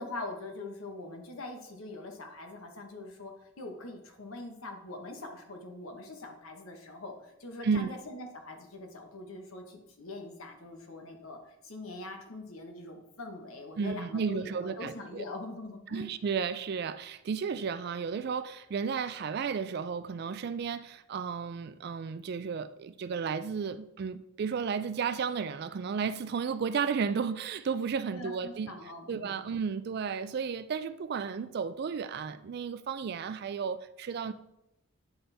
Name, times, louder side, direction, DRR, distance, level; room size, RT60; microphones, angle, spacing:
voice 1, 0.0-16.1 28.1-29.5, left 2 dB, 80° left, 1.1 m, -43 dB
voice 2, 7.6-8.0 13.8-15.2 15.9-28.7 29.1-34.3, right 6 dB, 50° right, 0.3 m, -33 dB
9.3 x 4.2 x 3.4 m
head